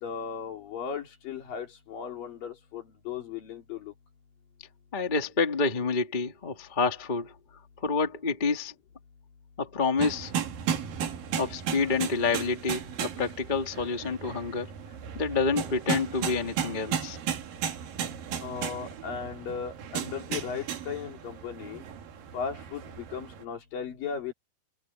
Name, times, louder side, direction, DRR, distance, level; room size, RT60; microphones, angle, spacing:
voice 1, 0.0-3.9 18.4-21.8 22.3-24.3, left 6 dB, 60° left, 4.9 m, -36 dB
voice 2, 4.9-7.3 7.8-8.7 9.6-10.3 11.4-14.7 15.1-17.2, left 4 dB, 20° left, 1.2 m, -28 dB
sound 1, 10.0-23.4, right 8 dB, 65° right, 3.6 m, -35 dB
omnidirectional pair, 4.5 m